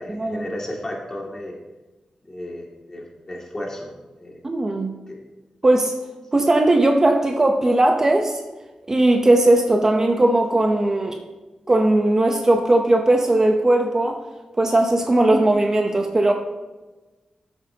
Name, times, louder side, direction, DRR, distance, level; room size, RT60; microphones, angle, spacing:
voice 1, 0.0-1.5 2.2-3.9 4.2-4.4 5.1-5.2, left 1 dB, 25° left, -2 dB, 2.3 m, -33 dB
voice 2, 4.4-4.9 5.6-5.9 6.3-8.4 8.9-11.2 11.7-14.2 14.6-16.3, right 1 dB, 25° right, 3 dB, 0.7 m, -18 dB
12.5 x 8.0 x 2.8 m, 1.2 s
wide cardioid pair, 120°, 2 cm